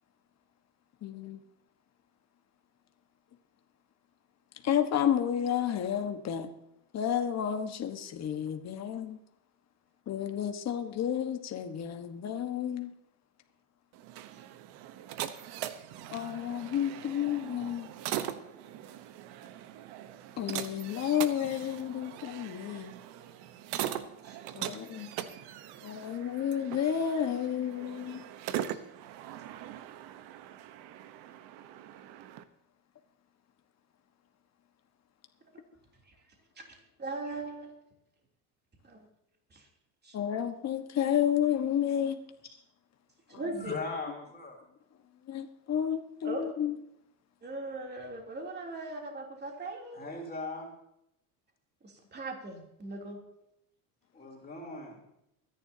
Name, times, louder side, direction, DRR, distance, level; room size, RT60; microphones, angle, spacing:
voice 1, 1.0-1.4 4.6-6.5 6.9-9.2 10.1-12.9 16.1-17.9 20.4-22.9 24.5-25.1 25.8-28.2 40.1-42.2 45.3-46.8, left 9 dB, 40° left, 6 dB, 1.4 m, -31 dB
sound 1, 13.9-32.4, right 11 dB, 65° right, 1.1 m, -41 dB
voice 2, 36.6-37.7 38.8-39.1 39.5-39.7 40.0-40.2 43.3-43.7 46.2-46.5 47.4-50.1 51.8-53.2, right 2 dB, 25° right, 1 dB, 3.1 m, -40 dB
voice 3, 43.5-44.6 49.9-50.7 54.1-55.0, left 3 dB, 20° left, -1 dB, 3.5 m, -39 dB
23.0 x 10.5 x 2.8 m, 0.80 s
supercardioid pair, 115°, 42 cm